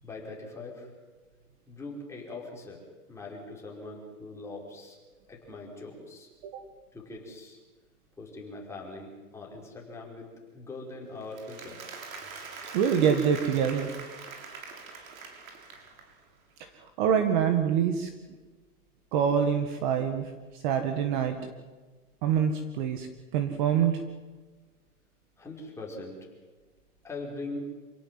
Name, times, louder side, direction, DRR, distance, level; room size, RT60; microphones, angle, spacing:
voice 1, 0.0-0.9 1.7-5.0 5.3-6.3 6.5-6.7 6.9-7.6 8.2-11.8 25.4-26.2 27.0-27.6, left 2 dB, 5° left, -2 dB, 5.4 m, -42 dB
Applause, 11.2-16.2, right 4 dB, 60° right, 6.6 m, -43 dB
voice 2, 12.7-13.9 16.6-18.1 19.1-21.4 22.2-23.1 23.3-24.0, right 8 dB, 30° right, 7 dB, 1.9 m, -26 dB
28.0 x 18.0 x 7.8 m, 1.3 s
hypercardioid pair, 155°, 45 cm